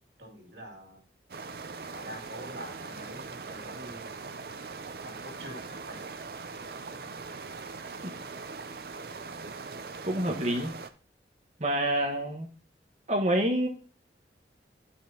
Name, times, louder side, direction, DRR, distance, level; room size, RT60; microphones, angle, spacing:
voice 1, 0.2-1.0 1.9-4.2 5.0-6.0, equal, 80° right, 0 dB, 2.6 m, -45 dB
sound 1, 1.3-10.9, right 4 dB, 60° right, 0.6 m, -41 dB
voice 2, 10.1-10.7 11.6-12.5 13.1-13.7, right 1 dB, 40° right, 0 dB, 1.5 m, -27 dB
10.5 x 5.9 x 2.9 m, 0.39 s
head